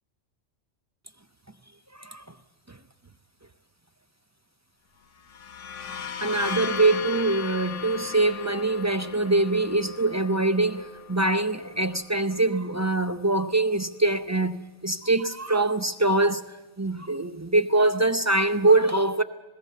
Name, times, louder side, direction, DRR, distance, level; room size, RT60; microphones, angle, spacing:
sound 1, 5.2-12.8, left 8 dB, 75° left, 1.2 m, -37 dB
voice 1, 6.0-16.4 16.8-19.2, right 2 dB, 25° right, 0.3 m, -24 dB
20.0 x 16.0 x 8.1 m
omnidirectional pair, 1.3 m